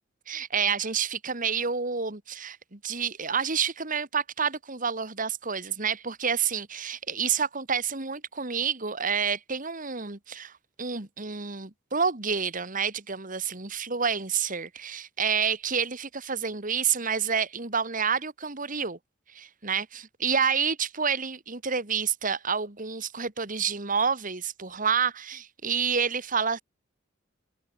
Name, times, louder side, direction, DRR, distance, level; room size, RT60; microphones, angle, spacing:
voice 1, 0.3-10.5 10.8-19.0 19.3-26.6, right 6 dB, 45° right, 2.3 m, -29 dB
head